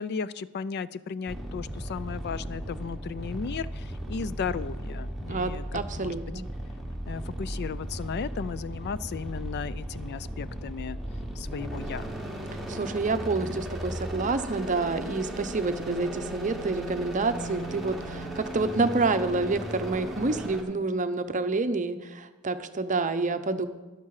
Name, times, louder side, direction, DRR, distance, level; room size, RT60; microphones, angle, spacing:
voice 1, 0.0-6.2 7.1-11.0 11.4-12.1, left 6 dB, 50° left, 17 dB, 0.3 m, -35 dB
sound 1, 1.3-20.6, right 1 dB, ahead, 1.4 m, -36 dB
voice 2, 5.3-6.5 12.7-23.7, right 3 dB, 35° right, 10 dB, 0.7 m, -28 dB
13.0 x 11.0 x 4.8 m, 1.2 s
head